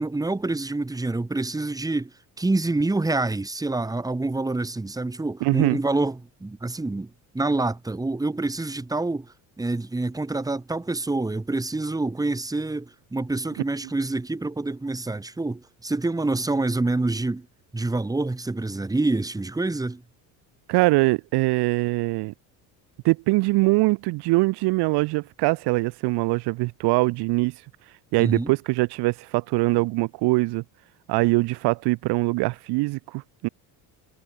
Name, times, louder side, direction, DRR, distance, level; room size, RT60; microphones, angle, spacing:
voice 1, 0.0-2.1 2.4-17.5 17.7-20.0 28.2-28.5, right 2 dB, 10° right, 1.8 m, -27 dB
voice 2, 5.4-5.8 20.7-22.3 23.0-27.5 28.1-30.6 31.1-33.5, right 23 dB, 75° right, 1.9 m, -22 dB
cardioid pair, 110°, 40 cm